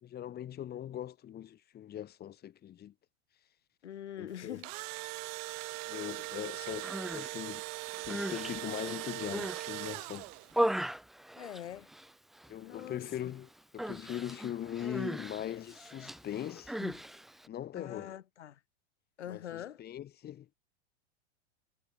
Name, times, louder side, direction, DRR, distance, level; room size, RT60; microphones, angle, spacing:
voice 1, 0.0-2.9 4.2-4.6 5.8-7.6 7.9-10.3 12.5-17.0 17.5-18.2 19.3-20.5, left 11 dB, 30° left, 2.2 m, -41 dB
voice 2, 3.8-5.0 11.4-11.9 12.6-13.3 17.7-18.6 19.2-19.8, left 10 dB, 80° left, 3.4 m, -44 dB
Engine / Drill, 4.4-10.6, right 31 dB, 50° right, 5.3 m, -40 dB
Human voice, 6.7-7.3 7.9-9.7 10.1-12.1 12.4-12.8 13.1-13.3 13.8-17.5, right 1 dB, ahead, 0.3 m, -37 dB
hypercardioid pair, 110°, 34 cm